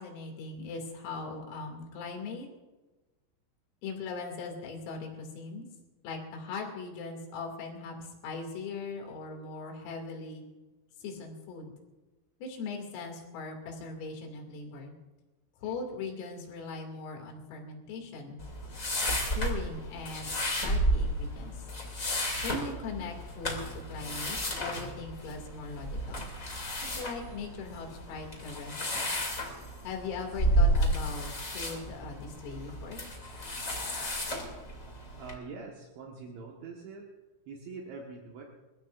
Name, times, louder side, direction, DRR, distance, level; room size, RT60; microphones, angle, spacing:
voice 1, 0.0-2.5 3.8-5.7 6.0-10.5 11.0-11.8 12.4-15.0 15.6-18.4 19.2-21.7 22.4-23.6 23.9-26.3 26.9-29.1 29.8-31.3 31.5-33.0, left 4 dB, 80° left, 2 dB, 5.2 m, -40 dB
sound 1, 18.4-35.3, equal, 25° left, 1.7 m, -32 dB
voice 2, 35.2-37.1 37.5-38.4, right 4 dB, 70° right, -1 dB, 3.6 m, -44 dB
28.0 x 15.0 x 2.6 m, 1.2 s
omnidirectional pair, 6.0 m